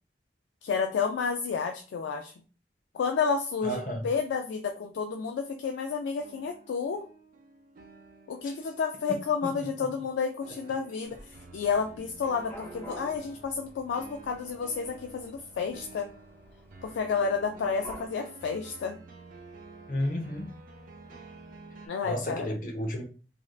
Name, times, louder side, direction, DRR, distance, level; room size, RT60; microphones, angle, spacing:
voice 1, 0.6-2.3 2.9-7.0 8.3-11.2 11.5-16.1 16.8-19.0 21.9-22.5, left 5 dB, 90° left, 0.3 m, -30 dB
voice 2, 3.6-4.1 8.4-8.5 9.4-9.5 19.9-20.5 21.8-23.0, equal, 50° left, 0.7 m, -32 dB
sound 1, 6.2-21.9, right 3 dB, 50° right, 0.5 m, -50 dB
Dog / Cat, 11.0-18.1, equal, 10° left, 0.5 m, -50 dB
3.1 x 2.6 x 2.3 m
head